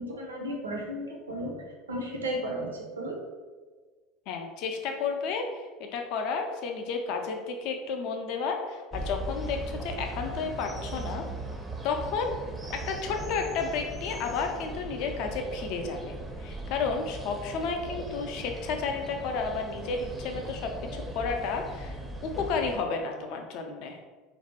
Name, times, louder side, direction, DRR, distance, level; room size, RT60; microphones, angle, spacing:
voice 1, 0.0-3.2, equal, 80° right, 0 dB, 0.4 m, -34 dB
voice 2, 4.3-11.2 11.8-12.3 12.7-24.0, left 5 dB, 55° left, 4 dB, 0.3 m, -32 dB
sound 1, 8.9-22.8, right 1 dB, 15° right, 0.4 m, -38 dB
2.5 x 2.0 x 2.8 m, 1.4 s
figure-of-eight pair, 70°, 0 cm